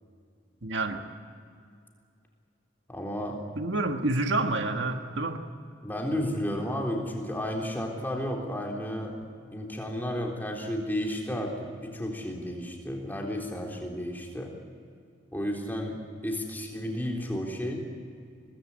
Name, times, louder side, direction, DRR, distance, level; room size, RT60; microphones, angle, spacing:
voice 1, 0.6-1.0 3.5-5.4, right 2 dB, 70° right, 5 dB, 1.6 m, -28 dB
voice 2, 2.9-3.4 5.8-9.1 9.5-14.5 15.3-17.9, equal, 10° left, 0 dB, 3.7 m, -32 dB
23.5 x 19.0 x 8.5 m, 2.3 s
head